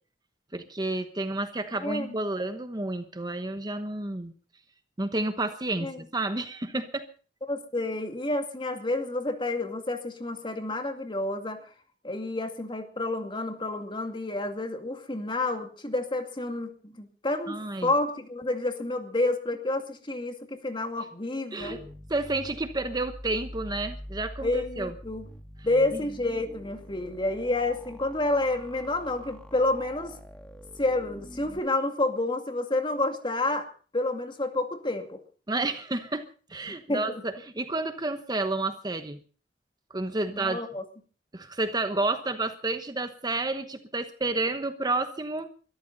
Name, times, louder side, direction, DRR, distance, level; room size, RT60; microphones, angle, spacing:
voice 1, 0.5-4.3 5.0-7.0 17.5-17.9 21.5-21.8 22.1-24.9 25.9-26.0 35.5-39.2 39.9-40.6 41.3-45.5, right 2 dB, 25° right, 9 dB, 1.1 m, -30 dB
voice 2, 1.8-2.2 5.8-6.0 7.5-11.6 12.0-21.8 24.4-25.3 25.6-30.1 30.8-33.7 33.9-35.2 36.9-37.2 40.3-40.8, left 2 dB, 30° left, 6 dB, 2.2 m, -29 dB
sound 1, 21.6-31.6, equal, 5° left, 1.6 m, -45 dB
23.0 x 13.5 x 4.0 m, 0.40 s
head